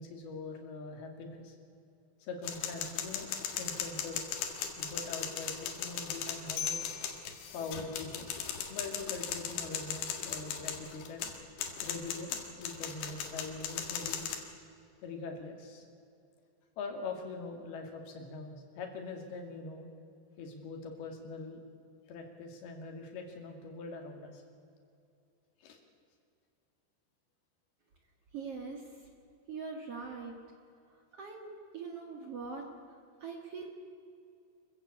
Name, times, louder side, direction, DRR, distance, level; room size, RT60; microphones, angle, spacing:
voice 1, 0.0-1.6 2.2-3.3 3.6-4.3 4.8-6.8 7.5-8.3 8.7-11.3 11.8-14.3 15.0-15.9 16.8-19.9 20.4-21.6 22.1-24.4 25.6-25.8, left 3 dB, 60° left, 3 dB, 4.2 m, -43 dB
sound 1, 2.4-14.4, left 8 dB, 75° left, 4.1 m, -38 dB
voice 2, 28.3-29.1 29.5-30.4 31.1-33.7, right 4 dB, 60° right, 2 dB, 1.6 m, -43 dB
26.0 x 15.0 x 8.5 m, 2.5 s
omnidirectional pair, 5.3 m